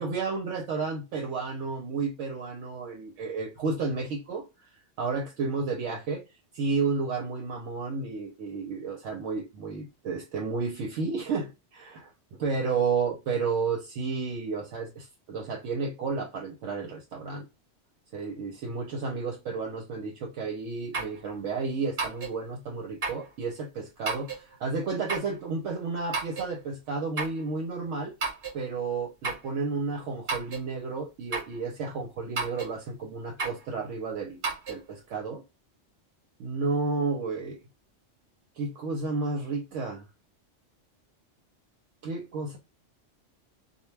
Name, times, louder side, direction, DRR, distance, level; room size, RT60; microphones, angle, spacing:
voice 1, 0.0-4.4 5.0-6.2 6.5-12.1 12.4-17.5 18.1-28.1 28.5-34.4 34.7-35.4 36.4-37.6 38.6-40.0 42.0-42.6, right 4 dB, 80° right, 0.9 m, -32 dB
sound 1, 20.9-21.2 22.0-22.4 23.0-23.3 24.1-24.4 25.1-25.3 26.1-26.5 27.2-27.4 28.2-28.6 29.2-29.5 30.3-30.7 31.3-31.6 32.4-32.7 33.4-33.6 34.4-34.8, right 4 dB, 55° right, 1.0 m, -32 dB
2.3 x 2.1 x 3.1 m
omnidirectional pair, 1.3 m